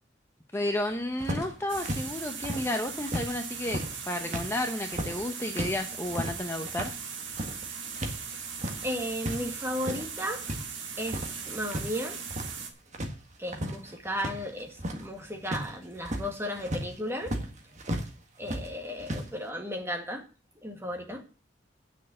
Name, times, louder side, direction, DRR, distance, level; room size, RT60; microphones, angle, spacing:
voice 1, 0.5-6.9, left 1 dB, 15° left, 0.8 m, -32 dB
sound 1, 1.2-3.3 3.6-8.2 8.5-9.4 9.7-10.6 11.0-11.9 12.1-12.6 12.9-18.1 18.4-19.3, equal, 40° right, 1.7 m, -35 dB
sound 2, 1.7-12.7, right 6 dB, 80° right, 2.2 m, -39 dB
voice 2, 8.8-10.5 11.0-12.2 13.4-17.4 18.4-20.2 20.6-21.2, equal, 15° right, 2.0 m, -35 dB
9.2 x 6.6 x 7.8 m
head